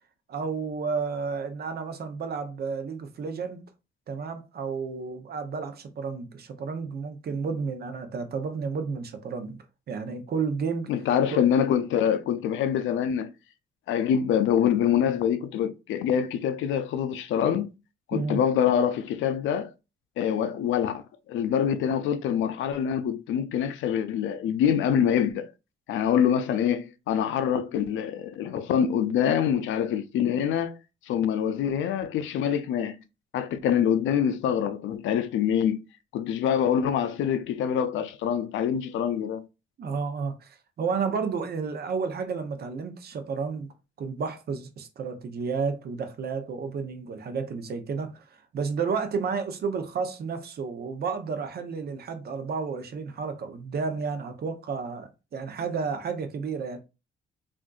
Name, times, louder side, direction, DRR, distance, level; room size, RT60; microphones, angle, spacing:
voice 1, 0.3-3.7 4.1-9.6 9.9-10.9 11.3-11.4 18.1-18.4 39.8-43.7 44.0-56.8, right 5 dB, 50° right, 0.7 m, -31 dB
voice 2, 10.9-13.3 13.9-17.7 18.1-19.7 20.2-21.0 21.3-25.5 25.9-30.8 31.1-33.0 33.3-35.8 36.1-39.4, left 8 dB, 75° left, 0.4 m, -25 dB
3.5 x 2.5 x 2.3 m
cardioid pair, 90°, 20 cm